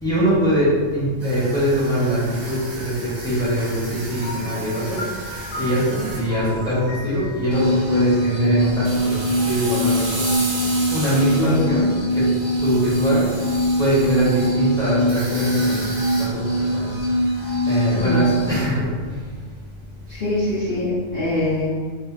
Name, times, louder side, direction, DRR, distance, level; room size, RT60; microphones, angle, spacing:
voice 1, 0.0-10.3 10.9-12.3 12.6-13.4 13.8-19.2, equal, 5° left, -9 dB, 0.9 m, -23 dB
sound 1, 1.2-7.3 7.7-8.0 8.8-11.6 12.1-14.5 15.0-16.9 17.3-17.6, right 1 dB, 50° right, 0.9 m, -34 dB
Piano, 4.2-9.1, equal, 75° left, 1.1 m, -36 dB
sound 2, 7.5-18.5, equal, 25° left, 0.6 m, -22 dB
voice 2, 11.3-11.9 17.9-18.3 20.1-21.7, left 2 dB, 45° left, -11 dB, 1.0 m, -23 dB
2.8 x 2.5 x 3.6 m, 1.5 s
omnidirectional pair, 1.4 m